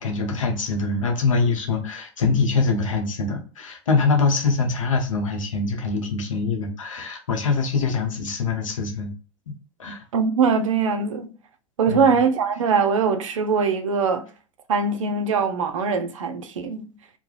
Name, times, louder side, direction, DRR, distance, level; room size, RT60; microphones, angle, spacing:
voice 1, 0.0-9.1 9.5-10.0 11.9-12.2, left 4 dB, 85° left, 0.7 m, -24 dB
voice 2, 10.1-11.3 11.8-14.3 14.7-16.9, right 5 dB, 80° right, 0.5 m, -22 dB
2.4 x 2.1 x 3.0 m
hypercardioid pair, 90°, 16 cm